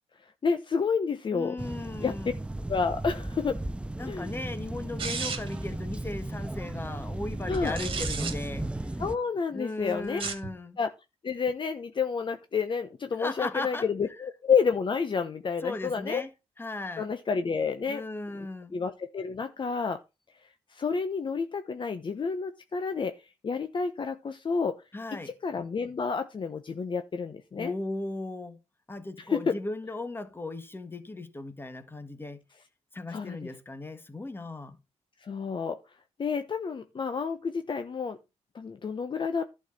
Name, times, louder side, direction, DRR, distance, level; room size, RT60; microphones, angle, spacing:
voice 1, 0.2-1.5 2.0-2.2 2.7-3.6 4.0-4.3 7.5-7.7 9.0-10.2 10.8-10.9 11.2-16.2 17.0-18.0 18.7-20.0 20.7-23.2 23.4-24.8 25.1-27.7 29.2-29.6 33.1-33.5 35.2-35.8 36.2-38.2 38.5-39.4, left 5 dB, 40° left, 1.0 m, -30 dB
voice 2, 1.3-2.3 4.0-8.7 9.5-10.8 13.2-13.8 15.6-16.3 16.6-17.1 17.9-18.8 24.9-25.3 27.6-28.6 28.9-32.4 32.9-34.8, left 2 dB, 20° left, 1.6 m, -37 dB
sound 1, 1.6-9.2, right 1 dB, 10° right, 0.6 m, -35 dB
sound 2, 5.0-5.6 7.5-8.3 10.1-10.5, right 5 dB, 45° right, 2.2 m, -33 dB
11.5 x 4.7 x 7.1 m
cardioid pair, 105°, 12 cm